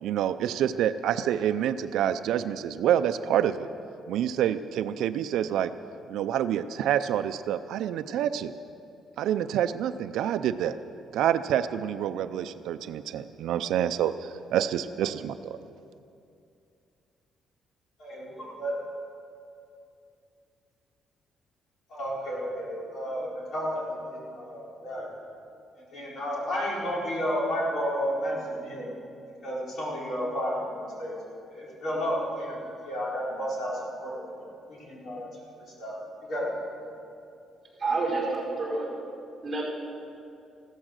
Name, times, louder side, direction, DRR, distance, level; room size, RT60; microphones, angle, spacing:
voice 1, 0.0-3.7 4.1-5.7 6.1-8.5 9.2-10.8 11.1-15.6, right 10 dB, 80° right, 11 dB, 0.5 m, -27 dB
voice 2, 18.0-18.7 21.9-25.1 25.9-28.9 29.4-35.3 35.8-36.8, equal, 50° left, -5 dB, 4.4 m, -32 dB
voice 3, 37.8-38.9 39.4-39.6, right 3 dB, 20° right, -3 dB, 5.0 m, -28 dB
15.0 x 13.5 x 6.6 m, 2.6 s
cardioid pair, 160°, 0 cm